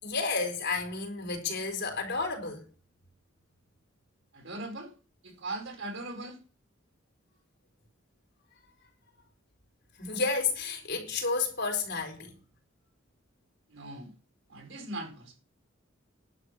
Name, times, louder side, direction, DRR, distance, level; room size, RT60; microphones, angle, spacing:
voice 1, 0.0-2.6 10.0-12.3, left 4 dB, 60° left, 4.5 m, -31 dB
voice 2, 4.3-4.9 5.2-6.4 13.7-14.1 14.5-15.4, right 2 dB, 65° right, 4.7 m, -39 dB
11.5 x 6.8 x 8.2 m
head